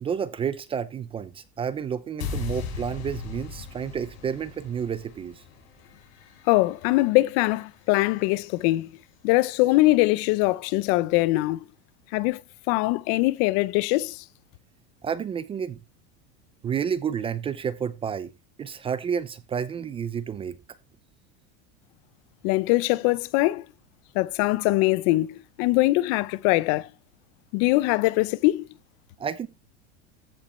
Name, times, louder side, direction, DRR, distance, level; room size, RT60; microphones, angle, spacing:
voice 1, 0.0-5.4 15.0-15.8 16.6-18.3 18.6-20.6 29.2-29.5, right 7 dB, 15° right, 0.4 m, -30 dB
sound 1, 2.2-8.4, left 6 dB, 90° left, 5.0 m, -38 dB
voice 2, 6.5-8.9 9.2-11.6 12.1-12.4 12.7-14.2 22.4-23.6 24.1-26.9 27.5-28.7, left 20 dB, 55° left, 0.5 m, -22 dB
14.5 x 5.2 x 4.2 m
supercardioid pair, 155°, 32 cm